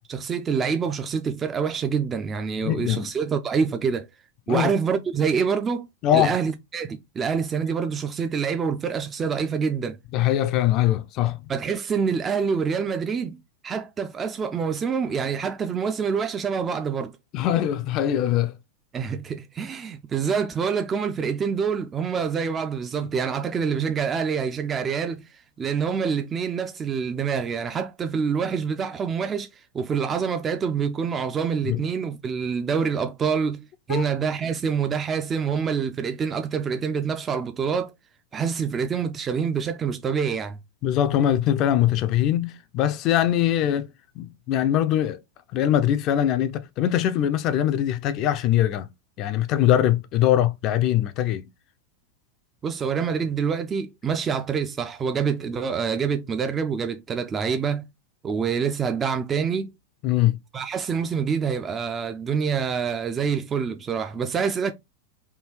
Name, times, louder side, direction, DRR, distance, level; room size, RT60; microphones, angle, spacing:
voice 1, 0.1-4.1 4.5-5.9 6.1-10.0 11.5-13.4 13.6-17.1 18.9-25.2 25.6-29.5 29.7-37.9 38.3-40.6 52.6-57.9 58.2-59.7 60.5-64.7, right 6 dB, 25° right, 0.4 m, -26 dB
voice 2, 2.6-3.1 4.5-4.7 6.0-6.4 10.1-11.4 17.3-18.5 31.6-31.8 33.9-34.1 40.8-43.9 44.2-45.2 45.5-48.9 49.2-51.5 60.0-60.4, left 11 dB, 45° left, 0.4 m, -22 dB
3.4 x 2.3 x 3.0 m
hypercardioid pair, 105°, 0 cm